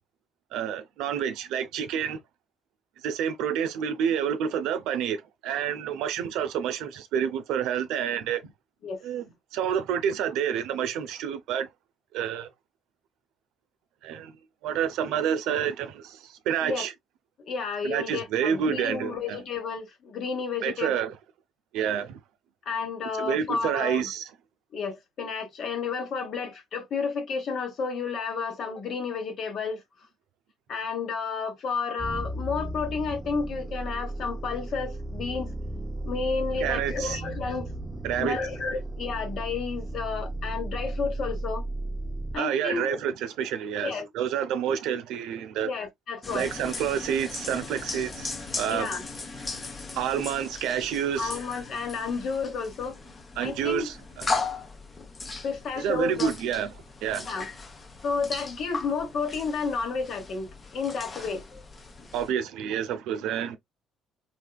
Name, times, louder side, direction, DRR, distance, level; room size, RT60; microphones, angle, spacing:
voice 1, 0.5-2.2 3.0-8.5 9.0-9.2 9.5-11.7 12.1-12.5 14.0-14.3 14.6-16.9 17.8-19.4 20.6-21.1 21.7-22.2 23.2-24.2 36.6-37.2 38.0-38.4 42.4-45.7 46.3-48.3 48.6-48.9 49.9-51.4 53.4-54.3 55.8-56.7 57.0-57.3 62.1-63.6, right 8 dB, 80° right, 0.6 m, -28 dB
voice 2, 17.4-21.0 22.6-24.1 24.7-29.8 30.7-35.5 36.0-37.7 38.2-41.6 42.3-43.1 43.8-44.1 45.6-46.5 48.7-49.0 51.2-53.0 53.4-53.9 55.4-56.3 57.2-57.5 58.0-61.6, left 5 dB, 55° left, 1.1 m, -31 dB
sound 1, 32.0-42.4, right 1 dB, 15° right, 0.4 m, -35 dB
sound 2, 46.2-62.3, left 3 dB, 25° left, 0.8 m, -37 dB
3.5 x 2.7 x 2.2 m
cardioid pair, 110°, 0 cm